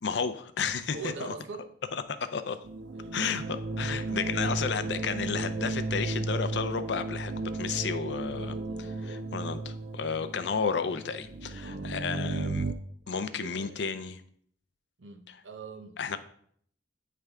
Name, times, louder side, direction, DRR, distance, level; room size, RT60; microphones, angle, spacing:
voice 1, 0.0-1.3 1.9-2.6 3.1-8.6 9.1-12.7 13.1-14.2 16.0-16.2, left 5 dB, 70° left, 0.5 m, -32 dB
voice 2, 0.9-1.7 2.9-3.2 3.9-4.7 8.3-9.3 11.6-11.9 13.1-13.8 15.0-16.2, right 4 dB, 90° right, 0.8 m, -44 dB
sound 1, 2.6-12.7, right 2 dB, 65° right, 0.5 m, -34 dB
9.1 x 3.3 x 3.5 m
head